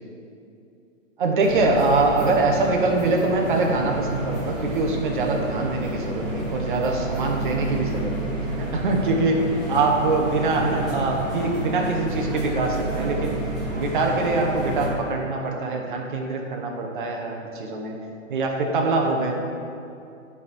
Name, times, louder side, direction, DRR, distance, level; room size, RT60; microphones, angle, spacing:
voice 1, 1.2-8.3 8.6-9.4 9.7-13.4 13.7-18.0 18.3-19.5, right 3 dB, 40° right, 1 dB, 0.8 m, -23 dB
sound 1, 1.4-14.9, right 1 dB, ahead, 1.2 m, -30 dB
9.4 x 3.6 x 4.2 m, 2.6 s
hypercardioid pair, 160°, 39 cm